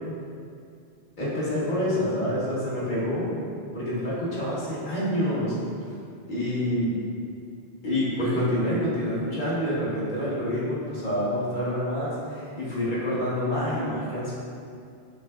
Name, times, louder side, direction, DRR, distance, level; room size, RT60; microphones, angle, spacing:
voice 1, 1.2-3.3 3.7-5.5 6.3-7.0 7.8-14.3, left 1 dB, 50° left, -8 dB, 1.3 m, -27 dB
6.1 x 3.3 x 2.4 m, 2.4 s
omnidirectional pair, 1.1 m